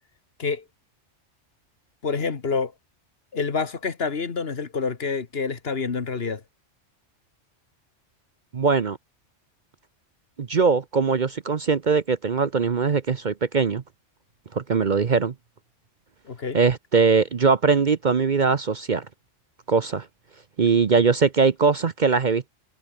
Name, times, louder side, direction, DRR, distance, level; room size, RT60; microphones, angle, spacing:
voice 1, 2.0-2.7 3.3-6.4 16.3-16.6, left 5 dB, 55° left, 1.7 m, -27 dB
voice 2, 8.5-9.0 10.4-13.8 14.5-15.3 16.5-19.1 19.7-20.1 20.6-22.5, right 5 dB, 45° right, 0.9 m, -21 dB
omnidirectional pair, 1.2 m